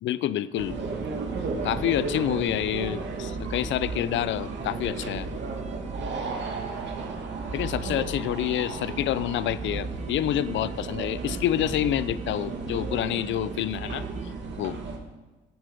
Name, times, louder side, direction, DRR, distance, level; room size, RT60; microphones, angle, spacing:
voice 1, 0.0-0.8 1.6-5.3 7.5-14.0 14.6-14.8, left 12 dB, 70° left, 17 dB, 0.5 m, -28 dB
sound 1, 0.6-14.3, right 5 dB, 35° right, 0.8 m, -46 dB
sound 2, 0.6-15.0, right 4 dB, 65° right, 2.2 m, -34 dB
16.5 x 7.5 x 5.3 m, 1.2 s
cardioid pair, 90°, 20 cm